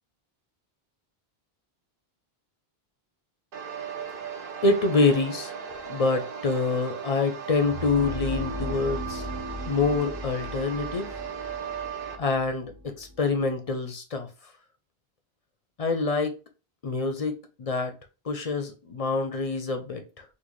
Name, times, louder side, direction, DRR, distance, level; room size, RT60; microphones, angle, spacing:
sound 1, 3.5-12.2, right 7 dB, 65° right, 0.8 m, -37 dB
voice 1, 4.6-5.5 5.9-9.3 9.7-11.1 12.2-14.3 15.8-16.3 16.8-17.9 18.2-20.2, left 3 dB, 50° left, 0.5 m, -26 dB
sound 2, 7.5-13.4, equal, 20° right, 0.9 m, -37 dB
3.8 x 2.2 x 3.1 m
omnidirectional pair, 1.0 m